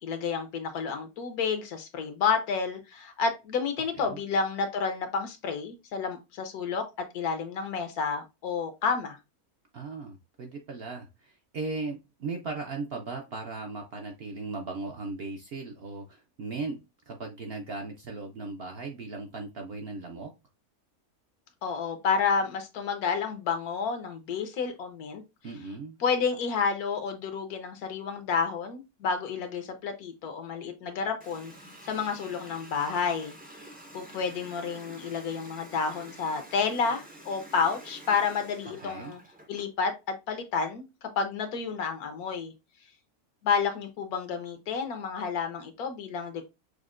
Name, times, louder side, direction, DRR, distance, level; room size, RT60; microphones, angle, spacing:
voice 1, 0.0-9.2 21.6-25.2 26.0-31.5 31.8-33.3 33.9-39.2 39.5-42.5 43.4-46.5, left 5 dB, 80° left, 1.3 m, -30 dB
voice 2, 9.7-16.8 17.1-20.3 25.4-26.0 38.8-39.2, right 3 dB, 60° right, 0.6 m, -37 dB
Water tap faucet, 31.2-39.7, right 1 dB, 15° right, 0.3 m, -48 dB
6.3 x 2.1 x 2.4 m
omnidirectional pair, 1.6 m